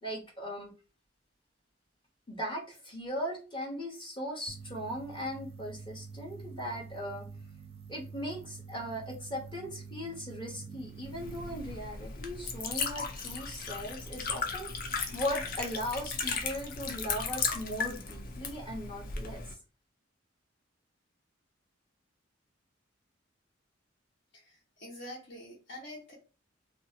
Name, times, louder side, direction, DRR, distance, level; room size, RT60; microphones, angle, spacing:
voice 1, 0.0-0.7 2.3-7.3 7.9-14.9 15.1-19.4, equal, 25° left, -3 dB, 0.8 m, -38 dB
sound 1, 4.5-11.7, right 5 dB, 30° right, 0.4 m, -47 dB
Liquid, 11.0-19.5, left 5 dB, 45° left, 0.5 m, -36 dB
voice 2, 24.3-26.1, left 1 dB, 60° left, -4 dB, 1.2 m, -46 dB
2.7 x 2.4 x 2.7 m, 0.34 s
head